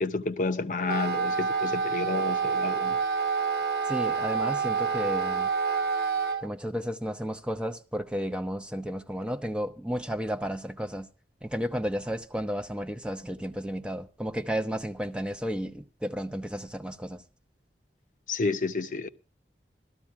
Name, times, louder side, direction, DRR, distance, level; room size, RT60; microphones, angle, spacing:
voice 1, 0.0-3.0 18.3-19.1, left 3 dB, 45° left, 0.8 m, -30 dB
Wind instrument woodwind instrument, 0.8-6.4, right 5 dB, 60° right, 1.1 m, -28 dB
voice 2, 3.8-5.5 6.4-11.1 11.4-17.2, equal, 5° right, 0.6 m, -33 dB
14.5 x 13.5 x 3.5 m
head